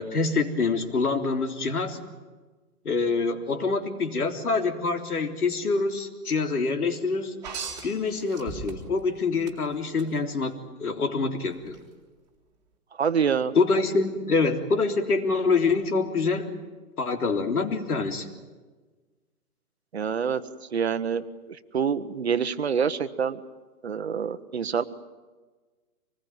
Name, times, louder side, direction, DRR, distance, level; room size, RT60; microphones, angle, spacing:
voice 1, 0.0-2.0 2.9-7.4 7.8-11.8 13.6-16.5 17.0-18.3, left 4 dB, 75° left, 5 dB, 3.7 m, -26 dB
sound 1, 7.4-9.0 9.5-10.1 11.7-11.8, right 5 dB, 5° right, 2.2 m, -37 dB
voice 2, 13.0-13.5 19.9-20.4 20.7-23.4 23.8-24.8, right 7 dB, 45° right, 12 dB, 1.1 m, -26 dB
25.5 x 20.5 x 9.4 m, 1.3 s
hypercardioid pair, 175°, 45 cm